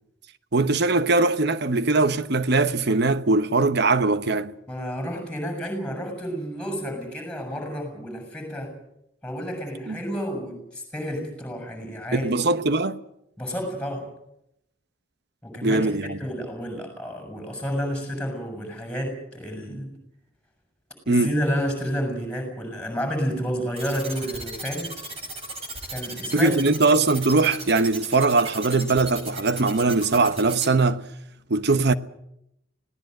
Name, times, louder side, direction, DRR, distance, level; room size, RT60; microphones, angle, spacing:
voice 1, 0.5-4.5 9.9-10.0 12.1-13.0 15.6-16.2 21.1-21.3 26.3-31.0 31.5-31.9, right 3 dB, 55° right, 1.0 m, -21 dB
voice 2, 4.7-8.8 9.2-12.4 13.4-14.1 15.4-15.9 16.2-19.9 21.1-24.9 25.9-26.6, equal, 5° left, 7.0 m, -30 dB
sound 1, 23.8-30.7, right 2 dB, 30° right, 5.5 m, -35 dB
25.5 x 18.0 x 7.9 m
head